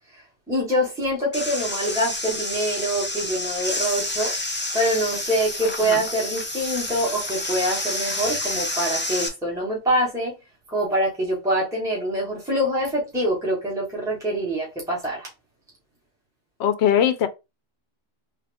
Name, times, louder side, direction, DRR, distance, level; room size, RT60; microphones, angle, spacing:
voice 1, 0.5-4.3 4.7-10.3 10.7-15.3, right 1 dB, 5° right, 1.6 m, -25 dB
sound 1, 1.3-9.3, left 2 dB, 15° left, 0.5 m, -29 dB
voice 2, 16.6-17.3, left 9 dB, 75° left, 0.8 m, -20 dB
3.6 x 2.5 x 3.4 m
omnidirectional pair, 1.2 m